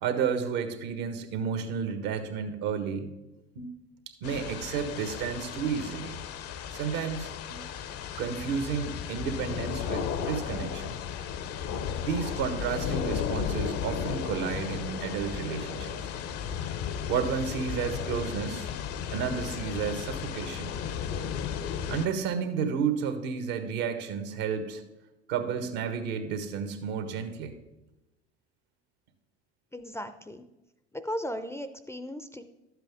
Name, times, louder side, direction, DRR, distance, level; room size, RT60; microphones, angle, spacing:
voice 1, 0.0-3.1 3.5-3.8 4.2-6.2 6.7-7.6 8.2-10.9 12.0-15.9 17.1-18.7 19.1-20.8 21.9-24.8 25.3-27.5, right 6 dB, 65° right, 8 dB, 1.5 m, -31 dB
sound 1, 4.2-22.1, left 8 dB, 45° left, 0.8 m, -34 dB
Bird, 12.7-15.9 16.4-16.5 16.8-17.1 17.9-18.0, left 4 dB, 85° left, 2.1 m, -46 dB
voice 2, 29.7-30.4 30.9-32.4, equal, 10° left, 10 dB, 0.6 m, -36 dB
12.0 x 7.9 x 3.6 m, 1.0 s
hypercardioid pair, 75°, 33 cm